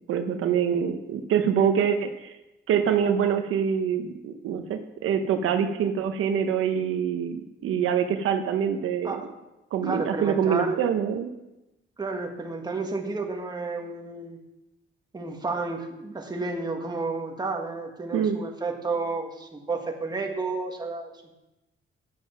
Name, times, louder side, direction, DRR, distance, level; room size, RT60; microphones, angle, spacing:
voice 1, 0.1-2.3 2.7-9.2 9.7-11.3 18.1-18.4, right 8 dB, 85° right, 7 dB, 0.9 m, -25 dB
voice 2, 9.8-10.8 12.0-14.4 15.1-21.3, right 3 dB, 20° right, 1 dB, 1.6 m, -31 dB
9.5 x 7.4 x 5.8 m, 0.96 s
cardioid pair, 115°, 21 cm